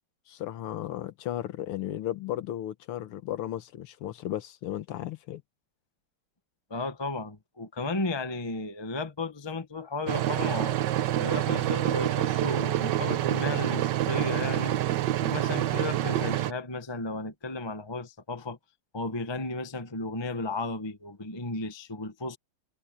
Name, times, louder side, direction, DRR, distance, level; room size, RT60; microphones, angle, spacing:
voice 1, 0.3-5.4, left 12 dB, 85° left, 1.9 m, -35 dB
voice 2, 6.7-14.8 15.2-18.6 18.9-22.4, left 3 dB, 15° left, 0.9 m, -34 dB
sound 1, 10.1-16.5, right 13 dB, 65° right, 1.3 m, -27 dB
omnidirectional pair, 2.4 m